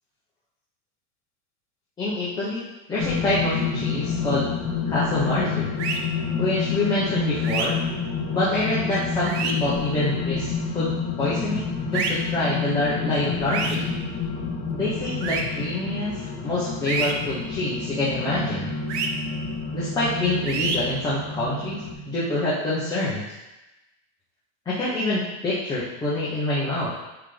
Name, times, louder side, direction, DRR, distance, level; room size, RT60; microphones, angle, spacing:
voice 1, 2.0-2.6 2.9-4.5 4.9-5.7 6.4-7.8 8.3-13.8 14.7-16.1 16.4-18.7 19.7-23.3 24.6-26.9, left 2 dB, 10° left, -9 dB, 1.1 m, -26 dB
sound 1, 3.0-21.9, left 5 dB, 50° left, 1.6 m, -29 dB
sound 2, 5.8-6.0 7.4-7.7 9.2-9.5 11.9-12.1 13.5-13.8 15.2-15.4 16.9-17.1 18.9-19.1 20.5-20.8, right 5 dB, 80° right, 0.9 m, -27 dB
9.4 x 3.8 x 3.4 m, 1.0 s
supercardioid pair, 175°, 34 cm